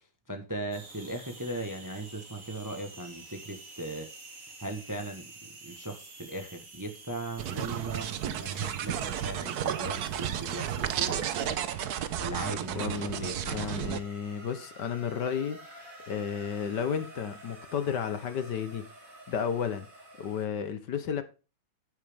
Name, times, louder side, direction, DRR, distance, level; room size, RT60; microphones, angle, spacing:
voice 1, 0.0-4.1 4.6-11.6 12.2-13.9, right 2 dB, 10° right, 0.9 m, -38 dB
sound 1, 0.7-20.5, right 2 dB, 40° right, 2.7 m, -50 dB
sound 2, 7.4-14.0, right 10 dB, 60° right, 1.2 m, -32 dB
voice 2, 12.7-18.8 19.3-19.9 20.2-21.2, left 7 dB, 60° left, 1.6 m, -33 dB
9.9 x 9.7 x 3.6 m
omnidirectional pair, 2.2 m